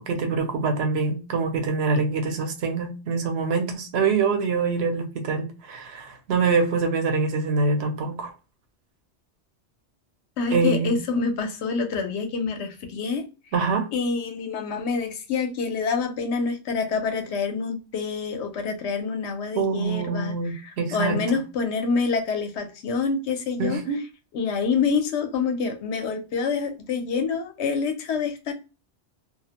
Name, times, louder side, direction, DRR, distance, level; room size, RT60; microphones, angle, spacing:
voice 1, 0.0-8.3 10.5-10.9 13.5-13.9 19.5-21.2 23.6-24.0, right 4 dB, 75° right, 0.9 m, -25 dB
voice 2, 10.4-13.2 13.9-23.8 24.3-28.5, left 5 dB, 85° left, 0.9 m, -27 dB
2.4 x 2.0 x 2.8 m
omnidirectional pair, 1.1 m